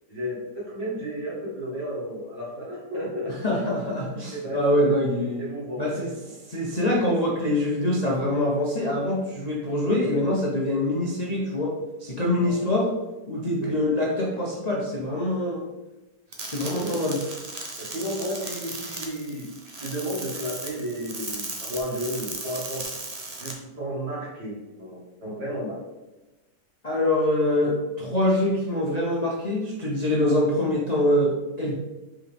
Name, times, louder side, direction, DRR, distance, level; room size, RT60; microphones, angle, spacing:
voice 1, 0.1-3.3 4.3-4.9 5.4-6.1 12.4-12.7 13.6-13.8 16.7-17.0 17.8-19.5 19.8-22.8 23.4-25.8, equal, 60° right, -6 dB, 2.8 m, -33 dB
voice 2, 3.4-5.5 5.8-6.1 6.5-11.7 12.0-12.9 13.3-15.6 16.4-17.2 26.8-31.7, left 1 dB, 35° left, -4 dB, 0.6 m, -24 dB
sound 1, 16.3-23.5, right 2 dB, 40° right, 0.5 m, -36 dB
5.4 x 4.9 x 3.5 m, 1.1 s
omnidirectional pair, 2.0 m